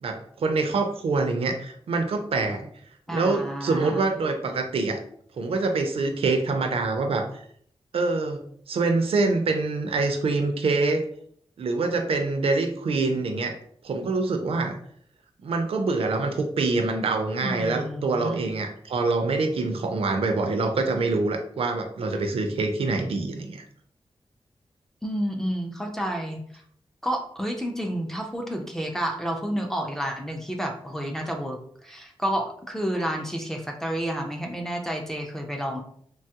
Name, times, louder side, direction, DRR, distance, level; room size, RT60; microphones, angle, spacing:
voice 1, 0.0-2.7 3.1-5.0 5.4-7.4 7.9-8.4 8.7-11.0 11.6-13.6 13.8-14.8 15.4-23.6, right 3 dB, 70° right, 5 dB, 0.4 m, -25 dB
voice 2, 3.1-4.0 17.4-18.4 25.0-26.4 27.0-35.8, equal, 5° left, 1 dB, 0.3 m, -30 dB
3.0 x 2.3 x 2.7 m, 0.63 s
wide cardioid pair, 180°, 10 cm